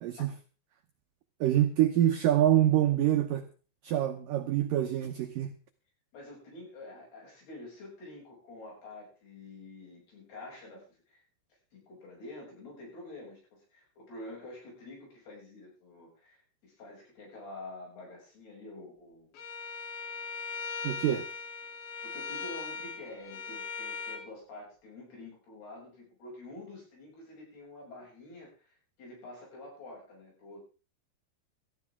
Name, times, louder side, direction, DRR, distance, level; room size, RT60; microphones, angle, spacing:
voice 1, 1.4-3.4 3.8-5.5 20.8-21.2, right 12 dB, 80° right, 7 dB, 2.0 m, -25 dB
voice 2, 6.1-11.2 11.7-19.4 22.0-30.6, left 2 dB, 60° left, -2 dB, 8.7 m, -48 dB
Bowed string instrument, 19.4-24.2, left 5 dB, 80° left, 4.2 m, -39 dB
17.0 x 13.5 x 3.6 m, 0.35 s
omnidirectional pair, 5.1 m